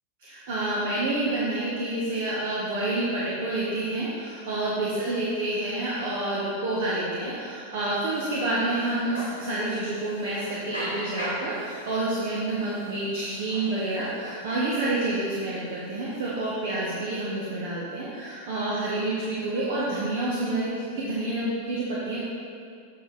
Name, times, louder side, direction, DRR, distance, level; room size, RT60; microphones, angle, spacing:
voice 1, 0.2-22.2, right 2 dB, 55° right, -7 dB, 1.4 m, -28 dB
sound 1, 7.7-17.1, equal, 90° right, 2.2 m, -42 dB
7.7 x 6.6 x 4.3 m, 2.3 s
figure-of-eight pair, 90°, 0 cm